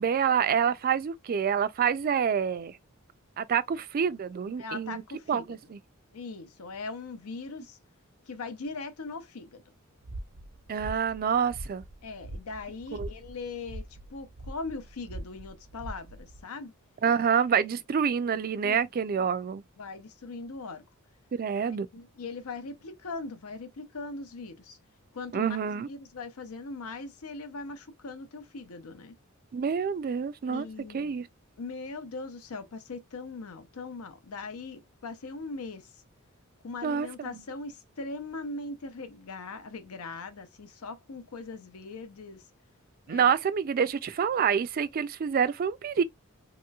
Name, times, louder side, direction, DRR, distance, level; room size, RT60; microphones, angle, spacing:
voice 1, 0.0-2.8 3.4-5.0 5.3-5.8 10.7-11.8 12.9-13.1 17.0-19.6 21.3-21.9 25.3-25.9 29.5-30.7 30.9-31.3 36.8-37.4 43.1-46.0, right 7 dB, 40° right, 0.3 m, -27 dB
voice 2, 4.6-5.4 6.1-7.8 8.3-9.6 12.0-16.7 17.6-17.7 18.6-18.8 19.8-20.8 21.6-24.8 25.1-25.6 25.9-29.2 30.4-31.2 31.6-36.0 36.6-42.4 43.1-43.3, left 3 dB, 80° left, 0.7 m, -40 dB
sound 1, 10.0-16.4, right 1 dB, 70° right, 0.6 m, -43 dB
3.0 x 2.9 x 2.3 m
head